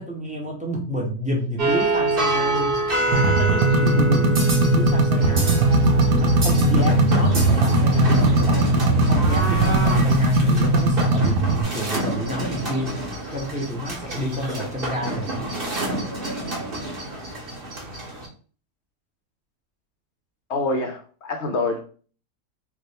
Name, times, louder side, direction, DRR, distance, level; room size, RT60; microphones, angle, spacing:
voice 1, 0.0-5.6 6.1-8.7 9.0-13.0 13.3-15.5, equal, 10° right, 0.4 m, -29 dB
sound 1, 1.6-18.3, right 2 dB, 35° right, 1.2 m, -27 dB
sound 2, 3.1-11.6, right 2 dB, 80° right, 1.3 m, -19 dB
sound 3, 5.2-10.2, equal, 55° right, 1.2 m, -25 dB
voice 2, 20.5-21.8, left 2 dB, 65° left, 0.7 m, -26 dB
3.4 x 2.6 x 3.9 m
omnidirectional pair, 1.8 m